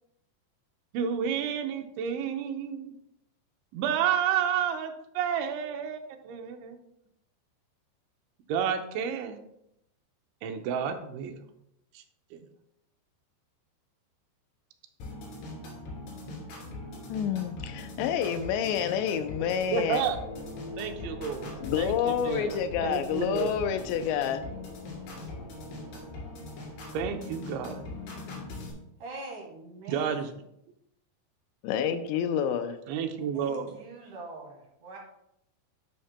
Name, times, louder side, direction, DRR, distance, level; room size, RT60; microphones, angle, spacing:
voice 1, 0.9-2.9 3.7-6.8 8.5-9.4 10.4-11.4 11.9-12.0 12.3-12.5 19.7-20.2 20.8-23.5 26.9-27.8 29.9-30.3 32.9-33.8, right 8 dB, 85° right, 6 dB, 3.1 m, -31 dB
sound 1, 15.0-28.7, left 2 dB, 70° left, 4.8 m, -41 dB
voice 2, 17.1-20.0 21.6-24.4 31.6-32.8, left 8 dB, 85° left, 8 dB, 2.7 m, -28 dB
sound 2, 17.6-28.1, equal, 5° right, 2.4 m, -46 dB
voice 3, 29.0-30.2 33.2-35.0, right 3 dB, 60° right, -1 dB, 2.6 m, -43 dB
12.0 x 7.2 x 2.2 m, 0.79 s
omnidirectional pair, 5.2 m